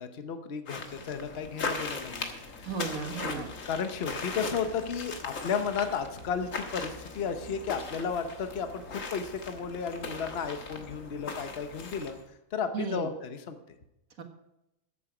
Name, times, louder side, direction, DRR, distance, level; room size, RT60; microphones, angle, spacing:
voice 1, 0.0-2.3 2.6-2.7 3.6-12.2 12.5-13.6, left 6 dB, 50° left, 8 dB, 1.2 m, -33 dB
sound 1, 0.7-12.2, left 4 dB, 70° left, 1.7 m, -39 dB
voice 2, 2.6-3.5 12.7-13.1 14.2-14.3, right 6 dB, 75° right, 5 dB, 1.9 m, -34 dB
13.5 x 8.2 x 4.9 m, 0.87 s
omnidirectional pair, 1.4 m